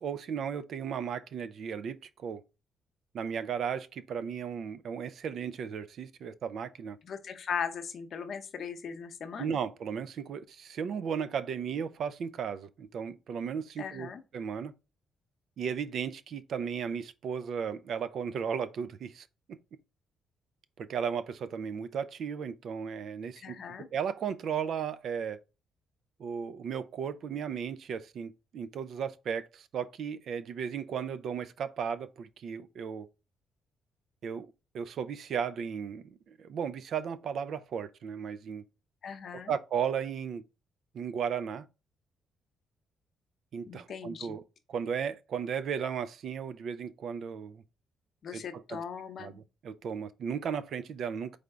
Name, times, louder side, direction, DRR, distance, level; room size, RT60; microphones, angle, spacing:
voice 1, 0.0-2.4 3.1-7.0 9.4-14.7 15.6-19.6 20.8-25.4 26.2-33.1 34.2-34.5 34.7-38.6 39.3-40.4 40.9-41.7 43.5-44.4 44.7-47.6 48.3-48.8 49.2-51.3, right 7 dB, 65° right, 0.4 m, -35 dB
voice 2, 7.0-9.6 13.8-14.2 23.4-23.9 39.0-39.5 43.7-44.3 48.2-49.4, left 7 dB, 60° left, 0.7 m, -38 dB
3.8 x 3.4 x 3.5 m
cardioid pair, 90°, 0 cm